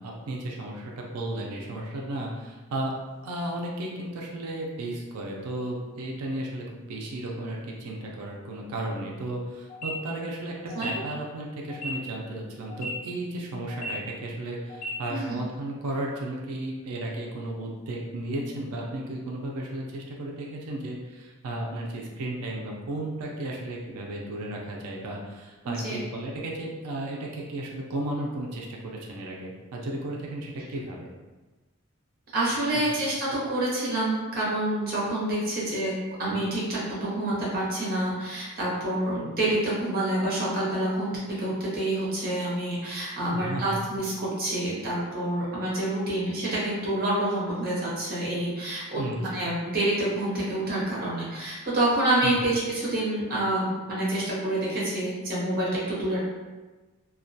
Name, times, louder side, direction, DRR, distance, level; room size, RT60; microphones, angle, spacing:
voice 1, 0.0-2.9 3.2-31.0 32.7-32.8 43.3-43.8 48.9-49.4 52.2-52.4, right 1 dB, 80° right, -1 dB, 0.4 m, -34 dB
sound 1, 9.7-9.9 10.7-10.9 11.7-11.9 12.7-12.9 13.7-13.9 14.7-14.9, right 2 dB, 35° left, 0.5 m, -35 dB
voice 2, 25.6-26.0 32.3-35.9 36.2-41.1 41.4-56.2, right 1 dB, 40° right, -6 dB, 0.7 m, -27 dB
2.2 x 2.1 x 2.6 m, 1.2 s
head